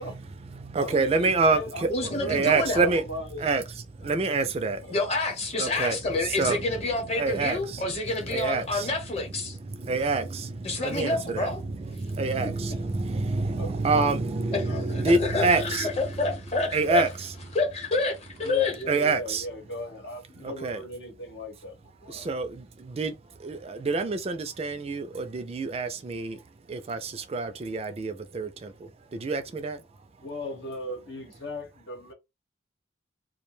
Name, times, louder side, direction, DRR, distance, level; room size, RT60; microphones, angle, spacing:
voice 1, 0.0-3.1 3.4-4.9 5.6-7.9 8.2-9.0 9.4-16.2 16.7-17.3 18.9-19.5 20.4-20.8 22.1-30.1, right 3 dB, 35° right, 0.3 m, -28 dB
voice 2, 0.8-3.4 4.8-5.0 12.4-12.6 13.6-13.7 14.6-14.9 18.4-22.3 30.2-32.1, equal, 75° left, 1.0 m, -37 dB
voice 3, 1.9-2.9 4.9-9.6 10.6-11.6 14.5-17.0 17.5-18.8, left 3 dB, 35° left, 0.9 m, -28 dB
2.3 x 2.1 x 3.1 m
head